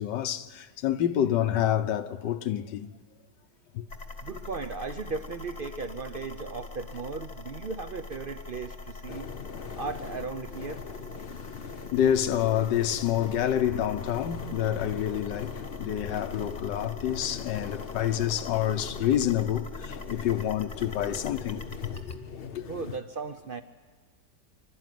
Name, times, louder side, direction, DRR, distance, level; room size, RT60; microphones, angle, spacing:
voice 1, 0.0-2.9 3.7-3.9 11.9-21.9 22.5-22.6, left 10 dB, 85° left, 1.5 m, -28 dB
sound 1, 3.9-22.2, left 3 dB, 25° left, 1.1 m, -43 dB
voice 2, 4.2-9.3 9.8-10.8 22.7-23.6, right 4 dB, 55° right, 0.6 m, -36 dB
sound 2, 9.1-23.0, left 6 dB, 45° left, 0.8 m, -41 dB
sound 3, 13.6-21.7, left 8 dB, 65° left, 1.2 m, -49 dB
25.5 x 12.5 x 9.3 m
omnidirectional pair, 1.8 m